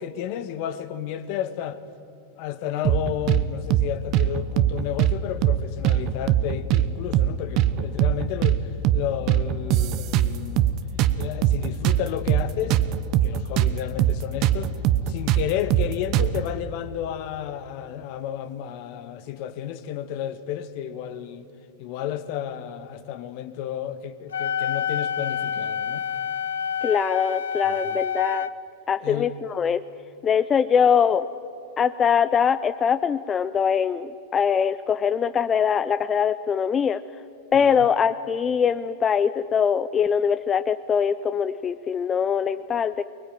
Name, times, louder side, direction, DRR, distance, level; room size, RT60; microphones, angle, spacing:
voice 1, 0.0-1.8 2.4-10.8 11.1-12.8 13.2-14.7 15.1-21.5 21.8-26.0 27.6-28.0 29.0-29.3 37.5-37.9, left 10 dB, 55° left, 1.5 m, -32 dB
sound 1, 2.8-3.4 3.7-3.9 4.1-5.1 5.4-5.6 5.8-6.9 7.1-7.3 7.6-8.6 8.8-9.0 9.3-10.7 11.0-13.7 14.0-14.1 14.4-16.4, right 12 dB, 50° right, 1.1 m, -21 dB
Wind instrument woodwind instrument, 24.3-28.5, left 8 dB, 85° left, 0.8 m, -28 dB
voice 2, 26.8-28.5 28.9-29.8 30.2-31.3 31.8-37.0 37.5-43.0, left 7 dB, 25° left, 0.6 m, -22 dB
24.5 x 20.5 x 9.4 m
hypercardioid pair, 105°, 0 cm